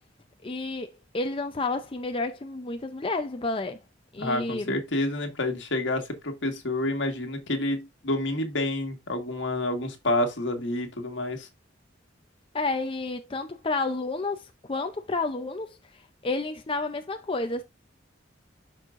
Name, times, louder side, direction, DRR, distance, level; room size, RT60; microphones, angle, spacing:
voice 1, 0.4-3.8 4.1-4.8 12.5-17.6, left 3 dB, 30° left, 0.5 m, -31 dB
voice 2, 4.2-11.5, left 1 dB, 70° left, 1.7 m, -28 dB
12.0 x 4.6 x 2.5 m
head